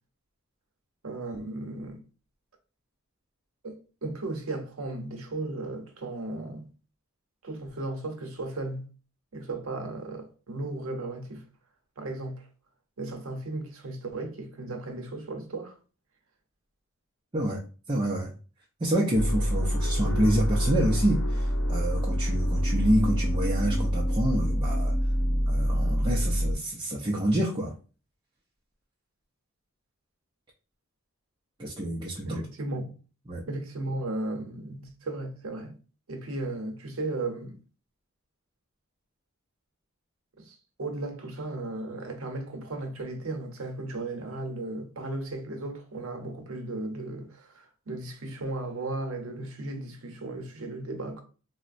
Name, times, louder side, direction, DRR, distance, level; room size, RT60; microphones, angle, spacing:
voice 1, 1.0-2.0 3.6-6.7 7.4-8.9 9.3-11.4 12.0-12.5 13.0-15.8 32.3-32.9 33.5-35.8 36.1-37.6 40.4-51.2, right 2 dB, 70° right, 0.8 m, -35 dB
voice 2, 17.9-18.3 18.8-25.0 25.5-27.7 31.6-32.4 33.3-33.4, right 1 dB, 20° right, 0.5 m, -27 dB
sound 1, 19.1-26.5, equal, 60° left, 0.9 m, -26 dB
3.9 x 2.1 x 2.5 m
head